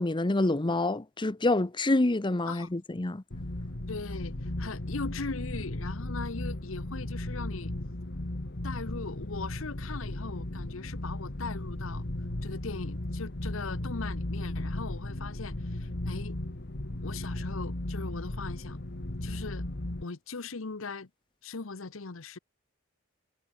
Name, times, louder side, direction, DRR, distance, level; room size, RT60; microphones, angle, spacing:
voice 1, 0.0-3.2, left 2 dB, 25° left, 0.8 m, -27 dB
sound 1, 3.3-20.0, left 1 dB, 55° left, 1.7 m, -36 dB
voice 2, 3.9-7.7 8.6-12.0 12.4-16.4 17.0-18.8 19.2-19.6 20.0-21.1 21.4-22.4, left 4 dB, 70° left, 1.0 m, -39 dB
head